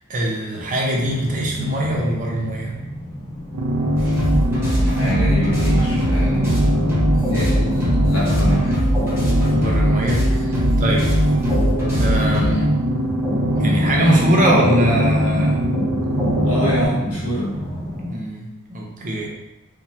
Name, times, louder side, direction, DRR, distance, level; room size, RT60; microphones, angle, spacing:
voice 1, 0.1-2.7 9.5-11.1 12.0-12.7 13.1-13.2 13.6-15.8 18.0-19.3, right 1 dB, 35° right, -2 dB, 0.5 m, -23 dB
sound 1, 0.9-18.1, equal, 15° left, 0.7 m, -28 dB
sound 2, 3.5-16.9, equal, 90° right, 0.5 m, -22 dB
sound 3, 4.0-12.5, equal, 10° right, 0.9 m, -22 dB
voice 2, 4.8-6.5 7.3-8.8 16.4-17.5, equal, 70° left, -6 dB, 1.1 m, -26 dB
2.9 x 2.1 x 2.7 m, 0.97 s
head